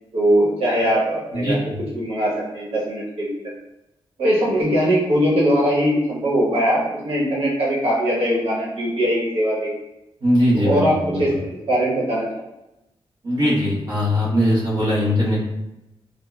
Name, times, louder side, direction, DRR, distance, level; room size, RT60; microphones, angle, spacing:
voice 1, 0.1-1.6 1.9-3.4 4.2-9.7 10.5-11.3 11.7-12.3, equal, 85° right, -7 dB, 1.0 m, -20 dB
voice 2, 10.2-11.2 13.2-15.4, equal, 45° right, -8 dB, 1.0 m, -20 dB
3.7 x 2.1 x 2.2 m, 0.92 s
wide cardioid pair, 165°, 10 cm